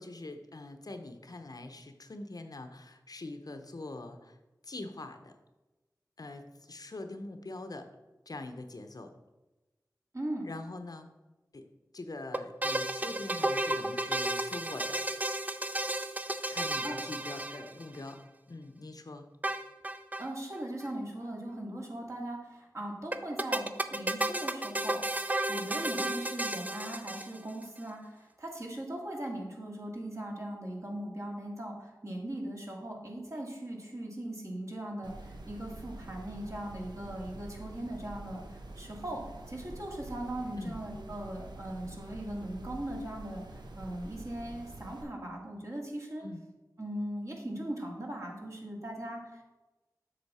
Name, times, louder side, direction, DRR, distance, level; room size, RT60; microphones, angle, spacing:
voice 1, 0.0-4.4 4.6-5.3 6.2-7.9 8.3-9.1 10.4-11.1 11.5-11.7 11.9-15.0 16.5-18.2 18.5-19.3 40.6-40.8 46.2-46.4, left 2 dB, 60° left, 6 dB, 0.7 m, -43 dB
voice 2, 10.1-10.4 16.8-17.0 20.2-25.2 25.5-46.2 46.8-49.4, right 1 dB, 45° right, -1 dB, 2.0 m, -39 dB
sound 1, 12.3-18.1 19.4-20.3 20.5-20.6 20.8-20.9 23.1-27.6, right 1 dB, 20° right, 0.5 m, -33 dB
sound 2, 35.0-45.0, right 2 dB, 90° right, 0.8 m, -46 dB
8.1 x 6.2 x 4.2 m, 1.1 s
wide cardioid pair, 60°, 7 cm